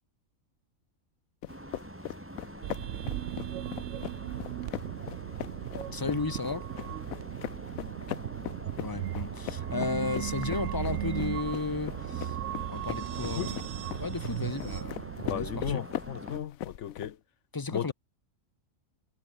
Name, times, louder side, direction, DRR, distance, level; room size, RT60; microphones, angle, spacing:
sound 1, 1.4-17.1, left 13 dB, 90° left, 1.1 m, -41 dB
sound 2, 1.5-16.4, right 1 dB, 10° right, 2.7 m, -45 dB
sound 3, 2.6-15.8, right 13 dB, 70° right, 0.8 m, -37 dB
voice 1, 5.9-6.7 8.8-12.4 12.7-13.6 14.0-15.8 17.5-17.9, left 4 dB, 20° left, 0.6 m, -34 dB
voice 2, 13.2-13.5 15.2-17.2 17.7-17.9, left 10 dB, 65° left, 1.0 m, -35 dB
omnidirectional pair, 1.4 m